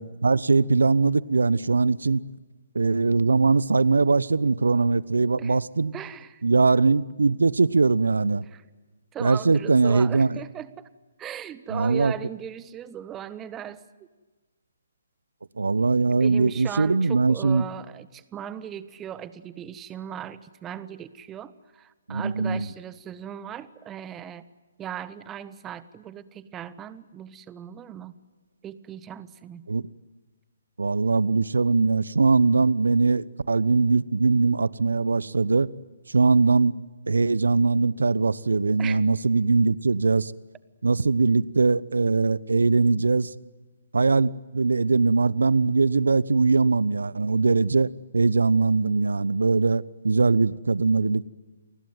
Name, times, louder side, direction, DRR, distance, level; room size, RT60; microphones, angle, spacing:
voice 1, 0.0-2.2 2.7-6.0 6.4-8.4 9.2-10.4 11.7-12.1 15.6-17.6 22.1-22.7 29.7-29.8 30.8-35.7 36.1-36.7 37.1-40.3 40.8-43.3 43.9-51.3, right 4 dB, 75° right, 0.9 m, -21 dB
voice 2, 5.9-6.4 8.5-8.6 9.1-10.9 11.2-14.1 16.1-24.5 24.8-28.2 28.6-29.6 38.8-39.0, right 9 dB, 15° right, 1.3 m, -38 dB
29.5 x 20.0 x 9.2 m
figure-of-eight pair, 135°, 0 cm